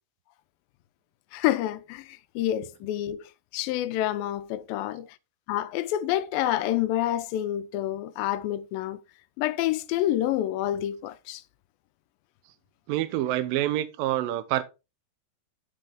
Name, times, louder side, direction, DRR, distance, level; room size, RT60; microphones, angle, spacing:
voice 1, 1.3-3.2 3.5-5.2 5.5-9.0 9.4-11.4, left 13 dB, 85° left, 2.3 m, -28 dB
voice 2, 12.9-14.6, right 13 dB, 85° right, 2.3 m, -27 dB
7.7 x 6.7 x 3.5 m
omnidirectional pair, 4.1 m